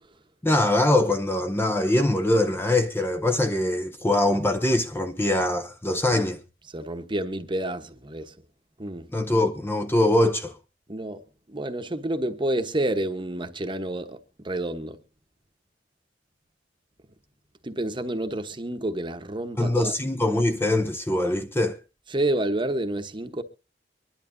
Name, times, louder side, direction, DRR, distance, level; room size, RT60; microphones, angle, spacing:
voice 1, 0.4-6.4 9.1-10.6 19.6-21.8, left 1 dB, 15° left, 0.6 m, -23 dB
voice 2, 6.7-8.3 8.8-9.1 10.9-11.2 11.5-15.0 17.6-19.9 22.1-23.4, right 1 dB, 25° right, 1.1 m, -29 dB
24.5 x 11.0 x 2.7 m
head